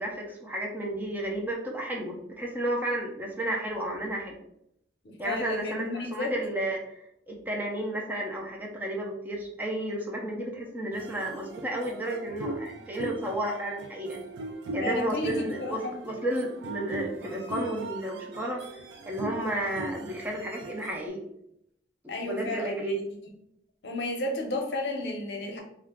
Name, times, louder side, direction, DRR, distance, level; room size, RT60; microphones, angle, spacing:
voice 1, 0.0-4.3 5.2-14.2 14.7-18.6 19.1-21.2 22.0-23.0, right 1 dB, 10° right, -1 dB, 0.4 m, -32 dB
voice 2, 5.0-6.3 14.8-16.0 22.1-23.0 23.8-25.6, left 2 dB, 70° left, 2 dB, 0.6 m, -32 dB
sound 1, 10.9-21.1, right 2 dB, 75° right, 0.4 m, -40 dB
2.4 x 2.2 x 3.4 m, 0.76 s
head